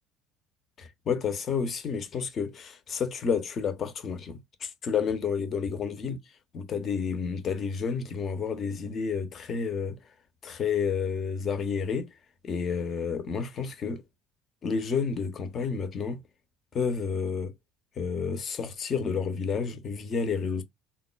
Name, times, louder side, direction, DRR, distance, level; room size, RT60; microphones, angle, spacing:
voice 1, 0.8-6.2 6.5-10.0 10.4-12.1 12.4-14.0 14.6-16.2 16.7-17.5 18.0-20.6, left 6 dB, 40° left, 0.6 m, -30 dB
3.6 x 2.2 x 2.3 m
figure-of-eight pair, 60°, 0 cm